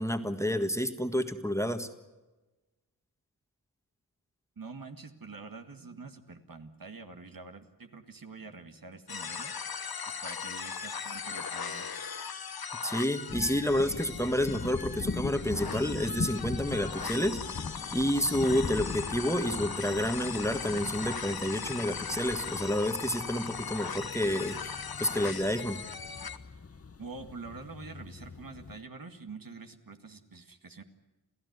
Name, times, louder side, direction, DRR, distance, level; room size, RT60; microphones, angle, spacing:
voice 1, 0.0-1.9 12.8-17.6 17.9-25.8, equal, 5° left, 8 dB, 1.6 m, -29 dB
voice 2, 4.6-9.5 10.1-11.9 27.0-30.8, right 4 dB, 60° right, 6 dB, 2.1 m, -46 dB
sound 1, 9.1-26.4, left 6 dB, 70° left, 1.2 m, -39 dB
sound 2, 13.3-28.8, left 4 dB, 35° left, 0.9 m, -41 dB
28.5 x 15.5 x 9.5 m, 1.1 s
wide cardioid pair, 65°, 38 cm